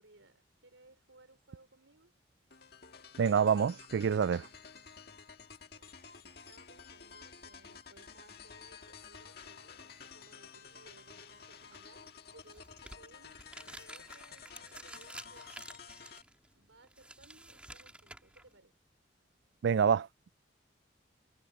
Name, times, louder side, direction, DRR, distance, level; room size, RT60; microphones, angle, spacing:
voice 1, 0.0-2.1 5.6-6.0 6.2-15.7 16.5-18.7, right 2 dB, 85° right, 5.0 m, -62 dB
sound 1, 2.5-16.2, left 6 dB, 55° left, 1.8 m, -52 dB
voice 2, 3.2-4.5 19.6-20.1, right 7 dB, 65° right, 0.3 m, -27 dB
sound 2, 12.4-18.6, right 1 dB, 5° right, 3.3 m, -51 dB
head